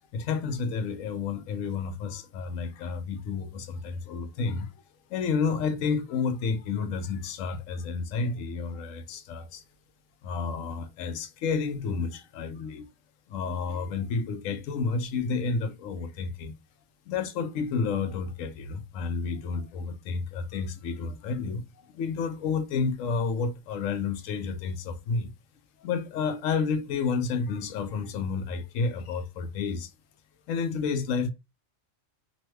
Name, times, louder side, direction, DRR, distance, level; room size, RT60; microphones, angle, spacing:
voice 1, 0.1-4.7 5.1-9.6 10.2-12.9 13.3-16.5 17.1-21.6 21.9-25.3 25.8-29.9 30.5-31.3, left 5 dB, 90° left, 1.0 m, -30 dB
2.9 x 2.2 x 3.0 m
omnidirectional pair, 1.3 m